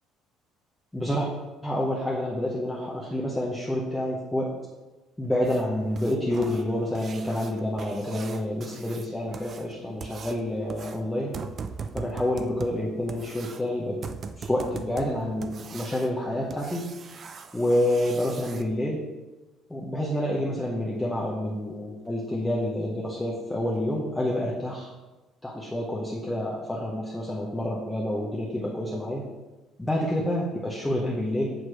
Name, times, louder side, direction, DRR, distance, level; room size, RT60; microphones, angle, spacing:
voice 1, 0.9-1.3 1.6-4.5 5.2-11.3 11.9-14.0 14.4-16.9 17.5-19.0 19.7-24.9 25.4-29.2 29.8-31.6, left 1 dB, 5° left, -4 dB, 0.8 m, -28 dB
sound 1, 5.4-18.6 20.9-21.0 21.5-21.6 22.0-22.1 22.6-22.7 23.2-23.3 23.7-23.8 24.3-24.4, right 5 dB, 30° right, 0.4 m, -41 dB
7.9 x 4.7 x 4.7 m, 1.1 s
cardioid pair, 165°, 0 cm